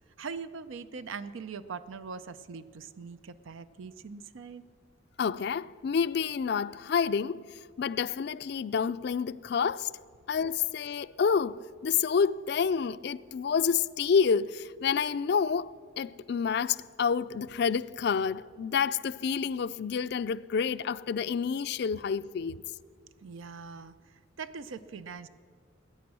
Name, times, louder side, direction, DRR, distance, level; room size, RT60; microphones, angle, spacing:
voice 1, 0.2-4.6 23.2-25.3, right 5 dB, 90° right, 0.5 m, -42 dB
voice 2, 5.2-7.4 7.8-9.9 10.3-22.6, left 6 dB, 55° left, 0.4 m, -28 dB
20.0 x 9.4 x 6.1 m
head